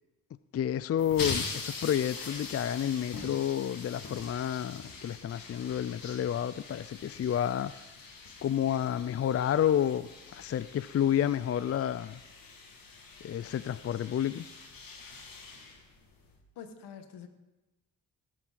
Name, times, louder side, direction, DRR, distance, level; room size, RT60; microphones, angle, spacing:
voice 1, 0.5-7.7 8.4-12.2 13.2-14.4, left 10 dB, 35° left, 0.5 m, -30 dB
sound 1, 1.0-16.4, left 4 dB, 55° left, 2.5 m, -43 dB
voice 2, 16.5-17.3, left 7 dB, 75° left, 1.6 m, -45 dB
17.5 x 7.7 x 4.2 m
supercardioid pair, 55°, 41 cm